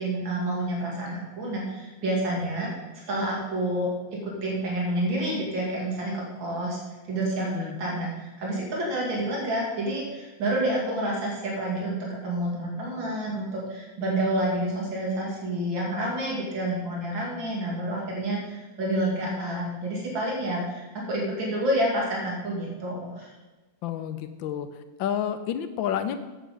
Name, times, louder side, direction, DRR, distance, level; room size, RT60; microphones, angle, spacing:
voice 1, 0.0-2.7 3.1-3.9 4.2-6.8 7.1-12.0 12.2-23.3, right 1 dB, 80° right, -3 dB, 2.8 m, -29 dB
voice 2, 7.4-7.8 23.8-24.7 25.0-26.2, left 9 dB, 85° left, 10 dB, 1.4 m, -29 dB
8.9 x 7.7 x 5.1 m, 1.2 s
omnidirectional pair, 2.1 m